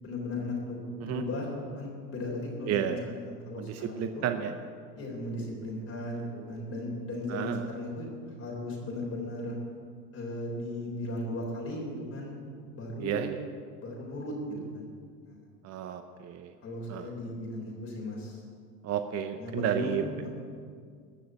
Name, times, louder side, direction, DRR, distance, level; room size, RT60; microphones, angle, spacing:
voice 1, 0.0-4.3 4.9-8.1 8.4-9.6 10.1-12.4 12.7-13.2 13.8-14.9 15.2-15.4 16.6-18.4 19.4-20.3, left 1 dB, 30° left, -2 dB, 3.8 m, -36 dB
voice 2, 2.6-3.1 3.6-4.5 7.3-7.7 13.0-13.4 15.6-16.5 16.9-17.1 18.8-20.0, right 9 dB, 35° right, 8 dB, 0.7 m, -32 dB
14.0 x 6.3 x 9.3 m, 2.1 s
hypercardioid pair, 95°, 47 cm